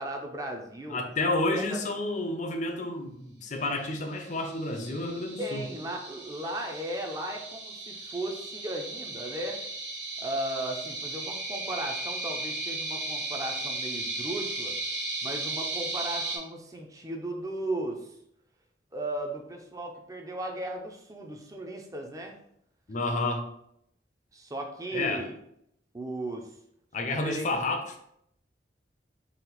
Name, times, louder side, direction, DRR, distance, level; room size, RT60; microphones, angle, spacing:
voice 1, 0.0-1.0 1.5-1.8 5.4-9.6 10.2-14.8 15.2-18.2 18.9-22.4 24.3-25.3 25.9-26.6 27.0-27.5, right 1 dB, 20° right, 2 dB, 0.5 m, -36 dB
voice 2, 0.9-5.6 22.9-23.4 24.9-25.2 26.9-28.0, left 2 dB, 40° left, 4 dB, 0.5 m, -30 dB
sound 1, 4.2-16.4, right 2 dB, 65° right, 1.3 m, -36 dB
4.1 x 2.4 x 3.9 m, 0.73 s
head